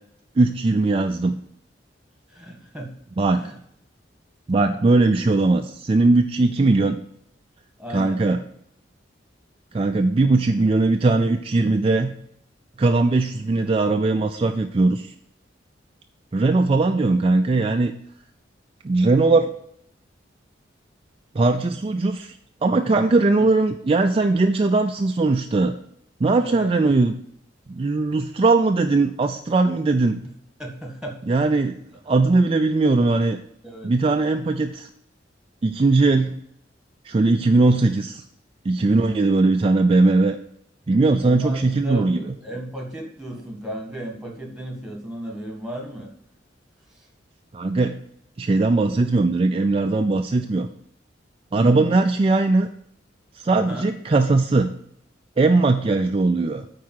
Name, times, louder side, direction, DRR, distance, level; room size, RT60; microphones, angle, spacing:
voice 1, 0.4-1.4 3.2-3.5 4.5-7.0 7.9-8.4 9.7-12.1 12.8-15.1 16.3-17.9 18.8-19.5 21.3-25.7 26.2-27.1 27.7-30.2 31.3-31.8 32.1-33.4 33.8-34.9 35.6-36.4 37.0-38.2 38.6-40.4 40.9-42.4 47.5-48.0 48.4-50.7 51.5-52.7 53.3-54.7 55.4-56.7, right 3 dB, 30° right, 5 dB, 0.4 m, -19 dB
voice 2, 2.3-2.9 3.3-3.6 7.8-8.2 26.4-26.7 30.6-31.2 33.6-33.9 38.8-39.1 41.2-46.1 51.5-51.9 53.5-53.9, right 1 dB, 5° right, 1 dB, 1.7 m, -34 dB
8.5 x 4.7 x 6.4 m, 0.70 s
head